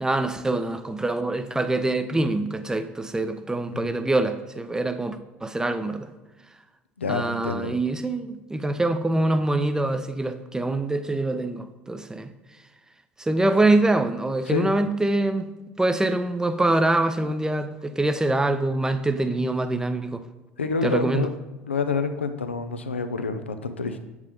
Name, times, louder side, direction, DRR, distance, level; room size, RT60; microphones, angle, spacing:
voice 1, 0.0-6.1 7.1-12.3 13.2-15.5 15.8-20.2 20.8-21.3, right 2 dB, 10° right, 0.7 m, -24 dB
voice 2, 7.0-7.7 14.5-14.7 20.6-21.3 21.6-24.0, left 4 dB, 85° left, 0.6 m, -27 dB
8.0 x 4.9 x 5.1 m
figure-of-eight pair, 60°, 6 cm